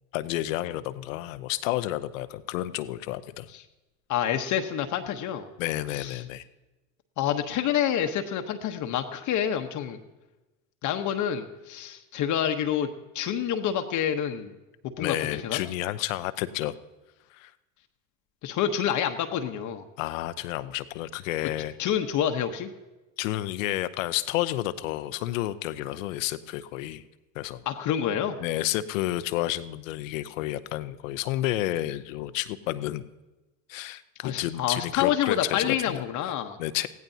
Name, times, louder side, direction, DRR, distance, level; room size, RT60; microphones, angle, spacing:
voice 1, 0.1-3.5 5.6-6.4 15.0-16.7 17.3-17.5 20.0-21.7 23.2-27.0 27.3-27.6 28.4-33.0 33.7-36.0 36.6-36.9, left 15 dB, 80° left, 13 dB, 0.8 m, -30 dB
voice 2, 4.1-5.5 5.9-6.2 7.2-10.0 10.8-12.9 13.1-14.5 15.0-15.6 18.4-19.8 21.8-22.7 27.7-28.4 34.2-36.6, left 9 dB, 50° left, 5 dB, 1.0 m, -28 dB
20.0 x 15.5 x 2.8 m, 1.1 s
hypercardioid pair, 90°, 39 cm